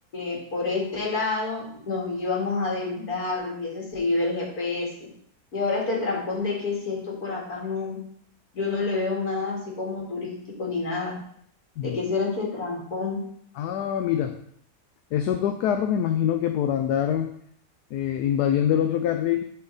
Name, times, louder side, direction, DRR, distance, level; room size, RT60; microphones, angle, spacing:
voice 1, 0.1-5.1 5.5-8.0 8.5-11.1 11.8-13.3, left 3 dB, 65° left, -3 dB, 2.7 m, -28 dB
voice 2, 13.6-14.4 15.1-17.3 17.9-19.4, left 9 dB, 85° left, 6 dB, 1.2 m, -24 dB
11.5 x 4.5 x 4.0 m, 0.67 s
omnidirectional pair, 1.7 m